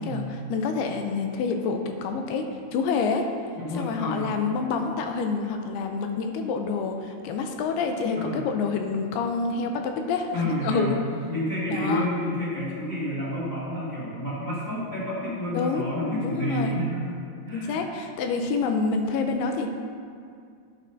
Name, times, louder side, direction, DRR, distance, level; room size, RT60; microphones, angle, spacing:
voice 1, 0.0-2.5 2.7-3.3 3.7-11.0 11.7-12.1 15.5-16.8 17.5-19.7, left 4 dB, 80° left, 5 dB, 2.4 m, -27 dB
voice 2, 3.5-4.3 8.1-8.4 10.3-10.9 11.3-17.8, equal, 50° left, -11 dB, 1.4 m, -30 dB
11.0 x 7.4 x 2.6 m, 2.3 s
omnidirectional pair, 4.9 m